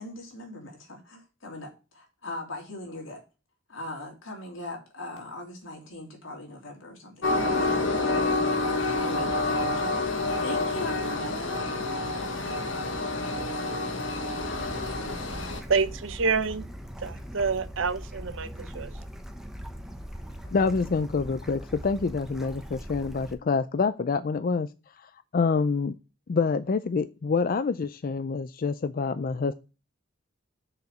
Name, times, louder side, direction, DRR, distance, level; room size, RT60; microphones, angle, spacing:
voice 1, 0.0-3.2 3.7-11.7, left 1 dB, 85° left, 3.0 m, -40 dB
Train, 7.2-15.6, left 2 dB, 70° left, 1.4 m, -28 dB
Bird / Stream, 14.4-23.3, equal, ahead, 0.9 m, -41 dB
voice 2, 15.2-16.6 17.0-18.9, right 5 dB, 75° right, 0.8 m, -28 dB
voice 3, 20.5-24.7 25.0-26.0 26.3-29.5, left 4 dB, 45° left, 0.4 m, -27 dB
6.6 x 5.0 x 6.8 m
head